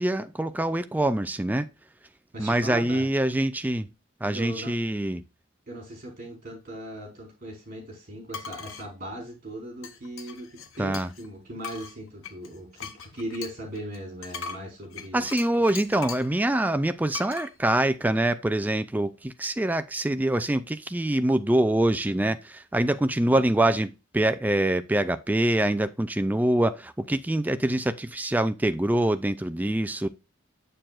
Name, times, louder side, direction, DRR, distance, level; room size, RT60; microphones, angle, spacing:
voice 1, 0.0-1.7 2.4-3.9 4.2-5.2 10.8-11.1 15.1-30.1, right 1 dB, 10° right, 0.3 m, -25 dB
voice 2, 2.3-3.1 4.3-4.7 5.7-15.2, right 1 dB, 45° right, 4.3 m, -38 dB
sound 1, 8.3-8.9 9.8-11.3 11.6-16.3 17.1-17.5, left 6 dB, 90° left, 0.8 m, -40 dB
7.5 x 6.8 x 2.4 m
head